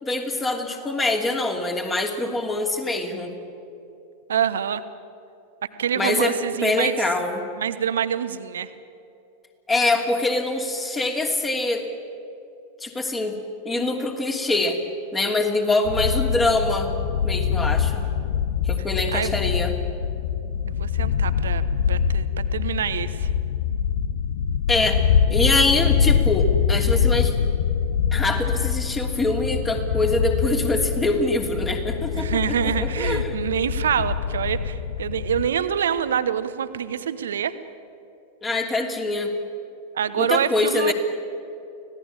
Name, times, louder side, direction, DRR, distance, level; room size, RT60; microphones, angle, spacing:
voice 1, 0.0-3.3 5.9-6.4 6.6-7.4 9.7-11.8 12.8-13.4 13.6-14.8 15.1-16.9 17.2-18.0 18.6-19.8 24.7-25.0 25.3-27.3 28.1-33.3 38.4-39.3 40.2-40.9, left 2 dB, 15° left, 3 dB, 2.9 m, -24 dB
voice 2, 4.3-4.8 5.8-6.9 7.6-8.7 19.1-19.4 20.6-22.3 22.5-23.3 32.1-37.5 39.9-40.9, right 8 dB, 65° right, 13 dB, 1.0 m, -26 dB
sound 1, 15.8-35.5, left 7 dB, 60° left, 0.9 m, -24 dB
25.5 x 17.5 x 8.8 m, 2.7 s
figure-of-eight pair, 90°, 0 cm